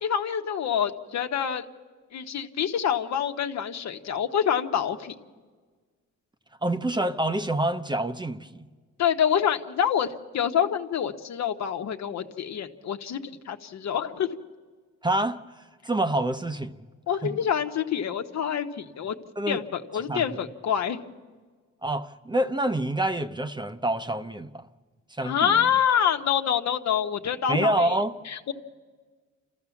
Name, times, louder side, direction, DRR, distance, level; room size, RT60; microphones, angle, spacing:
voice 1, 0.0-1.6 2.1-5.1 9.0-14.4 17.1-19.1 19.5-21.0 25.2-27.9 28.3-28.5, left 8 dB, 65° left, 1.2 m, -26 dB
voice 2, 6.6-8.5 15.0-15.4 15.8-16.7 19.4-19.6 20.1-20.2 21.8-24.7 25.2-25.7 27.5-28.1, right 1 dB, 15° right, 0.8 m, -26 dB
30.0 x 14.0 x 7.2 m
cardioid pair, 90°, 30 cm